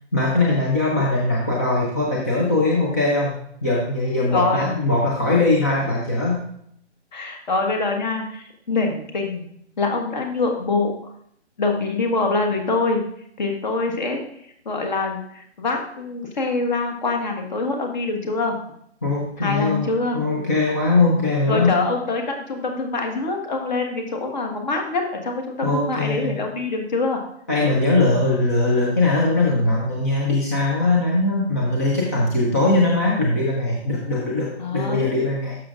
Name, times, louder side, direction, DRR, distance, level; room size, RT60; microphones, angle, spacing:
voice 1, 0.1-3.3 3.6-6.4 19.0-21.8 25.6-26.4 27.5-35.6, left 2 dB, 15° left, -3 dB, 0.5 m, -21 dB
voice 2, 4.3-4.7 7.1-9.4 9.8-10.9 11.6-13.0 13.4-14.2 14.6-18.6 19.4-20.2 21.5-27.2 34.6-35.2, left 3 dB, 40° left, 3 dB, 1.5 m, -24 dB
12.5 x 6.3 x 2.4 m, 0.69 s
figure-of-eight pair, 145°, 35 cm